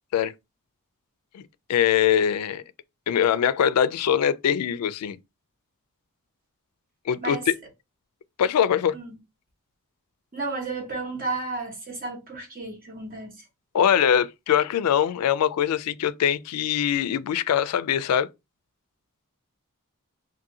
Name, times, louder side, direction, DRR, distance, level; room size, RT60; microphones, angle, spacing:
voice 1, 1.7-2.6 3.1-5.2 7.1-7.5 8.4-9.0 13.7-18.3, left 9 dB, 90° left, 0.3 m, -22 dB
voice 2, 10.3-13.4, right 3 dB, 40° right, 0.9 m, -32 dB
2.6 x 2.5 x 2.7 m
head